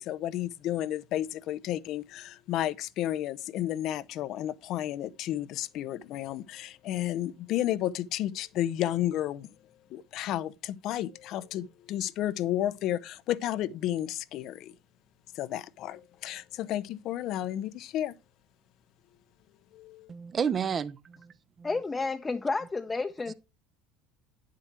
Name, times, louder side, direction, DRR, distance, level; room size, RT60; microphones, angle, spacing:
voice 1, 0.0-9.5 9.9-14.7 15.3-18.1 19.7-20.1, left 12 dB, 55° left, 0.5 m, -32 dB
voice 2, 20.1-21.7, right 7 dB, 35° right, 0.7 m, -32 dB
voice 3, 21.6-23.3, left 3 dB, 20° left, 0.7 m, -31 dB
9.9 x 7.5 x 4.4 m
figure-of-eight pair, 65°, 0 cm